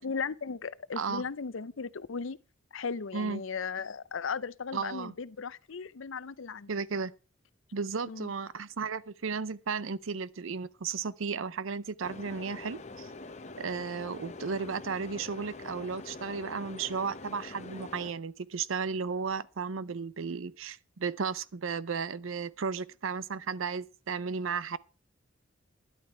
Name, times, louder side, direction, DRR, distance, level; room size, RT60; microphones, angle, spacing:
voice 1, 0.0-2.4 2.7-6.7 8.1-8.3, left 5 dB, 75° left, 0.6 m, -36 dB
voice 2, 1.0-1.3 3.1-3.4 4.7-5.1 6.7-7.1 7.7-13.1 13.6-24.8, right 5 dB, 80° right, 0.6 m, -34 dB
sound 1, 12.0-18.1, left 3 dB, 35° left, 0.8 m, -44 dB
12.5 x 11.0 x 4.5 m
head